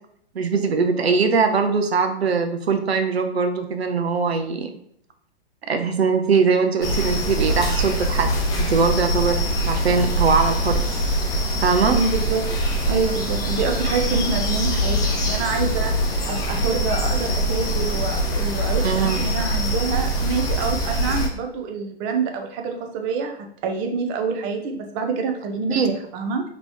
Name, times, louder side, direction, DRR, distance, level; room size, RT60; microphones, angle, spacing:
voice 1, 0.3-4.7 5.7-8.3 8.7-10.8 11.6-12.0 18.8-19.2 25.7-25.9, right 5 dB, 70° right, 7 dB, 0.7 m, -21 dB
sound 1, 6.8-21.3, right 1 dB, 10° left, 0.6 m, -23 dB
voice 2, 11.9-12.4 12.9-26.4, right 4 dB, 25° right, 4 dB, 0.6 m, -27 dB
5.3 x 3.0 x 2.9 m, 0.70 s
figure-of-eight pair, 115°, 32 cm